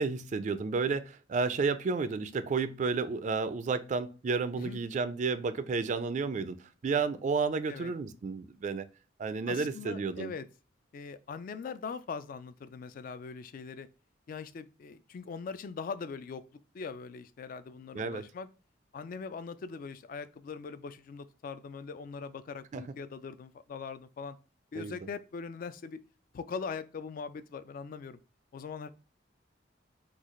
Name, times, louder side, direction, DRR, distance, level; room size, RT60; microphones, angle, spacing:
voice 1, 0.0-8.8 9.2-10.3 17.9-18.2 22.7-22.8 24.7-25.0, right 4 dB, 40° right, 0.3 m, -31 dB
voice 2, 9.5-10.5 10.9-13.9 14.3-18.5 18.9-24.4 24.7-26.0 26.3-28.2 28.5-28.9, left 5 dB, 50° left, 0.3 m, -41 dB
3.9 x 2.3 x 3.0 m
head